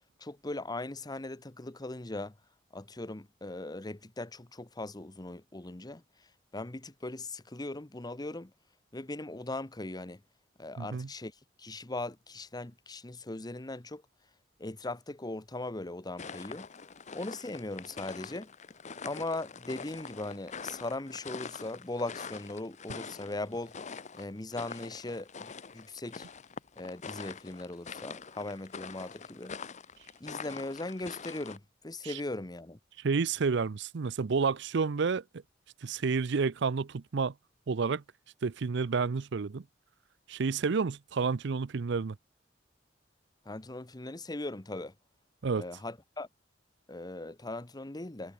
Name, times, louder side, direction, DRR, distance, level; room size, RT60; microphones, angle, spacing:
voice 1, 0.2-2.4 2.7-8.5 8.9-10.2 10.6-14.0 14.6-16.7 17.1-18.5 19.0-23.7 24.1-26.3 26.8-29.5 30.2-32.8 43.4-44.9 45.6-46.3 46.9-48.3, left 2 dB, 20° left, 1.1 m, -39 dB
voice 2, 10.8-11.1 32.0-32.1 33.0-35.2 35.8-37.3 37.7-38.0 38.4-39.6 40.3-42.2 45.4-45.6, right 5 dB, 65° right, 0.5 m, -30 dB
sound 1, 16.2-31.6, left 5 dB, 40° left, 0.9 m, -44 dB
head